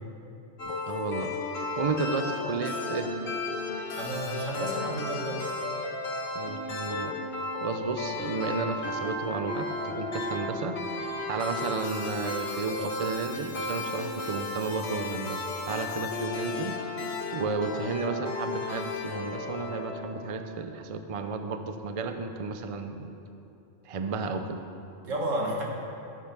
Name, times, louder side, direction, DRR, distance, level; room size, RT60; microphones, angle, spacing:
sound 1, 0.6-20.5, left 3 dB, 60° left, 1.3 m, -34 dB
voice 1, 0.6-1.3 1.6-3.1 6.3-7.1 7.6-10.8 11.3-16.8 17.3-23.1 23.9-24.6, right 4 dB, 45° right, 7 dB, 0.4 m, -32 dB
voice 2, 3.9-5.4 25.1-25.7, right 1 dB, 85° right, -1 dB, 1.8 m, -31 dB
8.5 x 8.4 x 6.0 m, 2.8 s
omnidirectional pair, 1.3 m